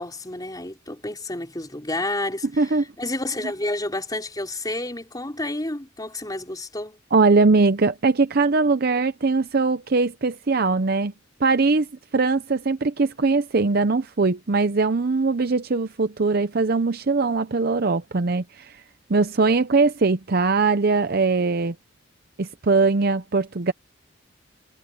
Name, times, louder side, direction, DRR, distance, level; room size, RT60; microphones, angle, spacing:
voice 1, 0.0-7.0, left 2 dB, 20° left, 4.2 m, -30 dB
voice 2, 7.1-11.1 11.4-11.9 12.1-18.8 19.1-21.7 22.4-23.7, right 3 dB, 50° right, 0.7 m, -21 dB
head